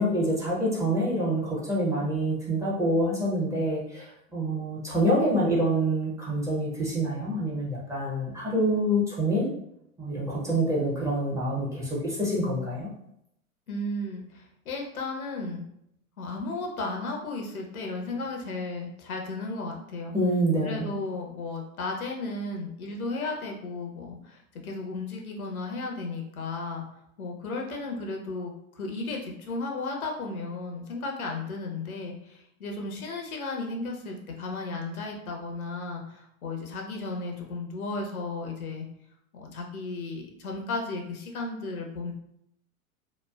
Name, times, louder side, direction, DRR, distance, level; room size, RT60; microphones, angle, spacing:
voice 1, 0.0-9.5 10.0-12.9 20.1-20.9, right 1 dB, 5° right, -6 dB, 0.6 m, -26 dB
voice 2, 13.7-15.7 16.2-20.1 20.6-26.8 27.2-38.9 39.3-42.1, left 3 dB, 80° left, 1 dB, 0.8 m, -34 dB
3.0 x 2.0 x 2.3 m, 0.77 s
hypercardioid pair, 100°, 42 cm